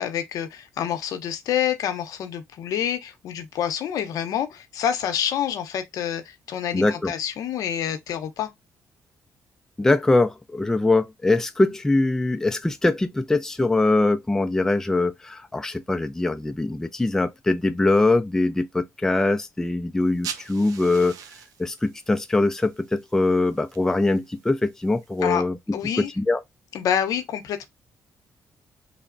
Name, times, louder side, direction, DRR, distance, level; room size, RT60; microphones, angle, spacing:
voice 1, 0.0-8.5 25.2-25.4 25.7-26.1 26.7-27.7, left 9 dB, 75° left, 0.6 m, -27 dB
voice 2, 6.7-7.1 9.8-21.1 21.6-26.4, left 2 dB, 10° left, 0.3 m, -22 dB
sound 1, 20.0-25.2, right 8 dB, 80° right, 0.5 m, -43 dB
3.2 x 2.0 x 2.4 m
cardioid pair, 90°, 6 cm